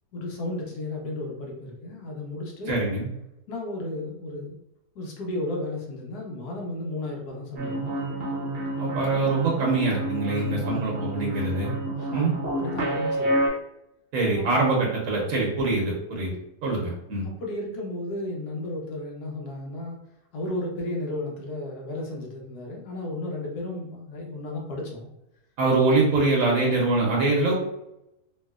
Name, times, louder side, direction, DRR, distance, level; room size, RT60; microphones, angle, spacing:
voice 1, 0.1-2.9 3.5-4.6 4.9-7.9 10.4-10.8 12.0-13.4 17.4-20.0 20.3-25.1, left 1 dB, 80° left, 0 dB, 1.2 m, -33 dB
voice 2, 2.7-3.1 8.8-11.7 12.1-12.3 14.1-16.3 16.6-17.2 25.6-27.5, right 3 dB, 70° right, -2 dB, 1.1 m, -24 dB
sound 1, 7.6-13.5, right 1 dB, 50° right, 0.8 m, -29 dB
3.0 x 2.7 x 2.3 m, 0.85 s
omnidirectional pair, 1.7 m